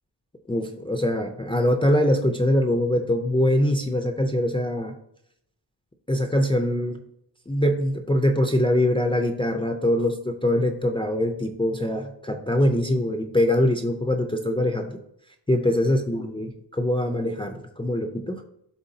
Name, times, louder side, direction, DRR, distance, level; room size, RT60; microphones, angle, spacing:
voice 1, 0.5-4.9 6.1-7.0 7.5-15.0 15.5-18.4, left 1 dB, 10° left, 4 dB, 0.4 m, -23 dB
11.0 x 3.7 x 2.7 m, 0.75 s
wide cardioid pair, 150°, 44 cm